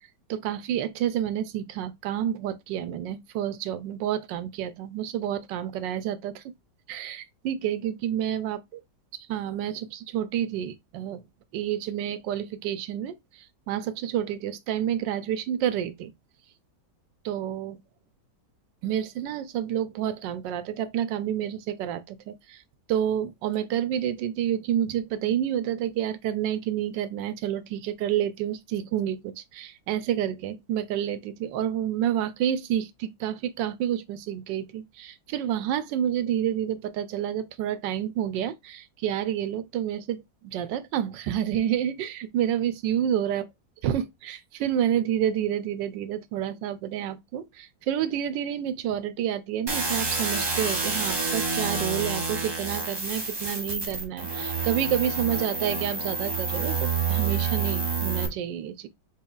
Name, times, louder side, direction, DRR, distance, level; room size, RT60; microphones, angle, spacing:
voice 1, 0.3-6.4 6.9-8.8 9.3-11.2 11.5-16.1 17.2-17.8 18.8-22.6 22.9-43.5 43.8-58.9, right 10 dB, 85° right, 1.3 m, -29 dB
sound 1, 49.7-58.3, right 4 dB, 25° right, 0.6 m, -28 dB
6.1 x 3.0 x 2.3 m
omnidirectional pair, 1.9 m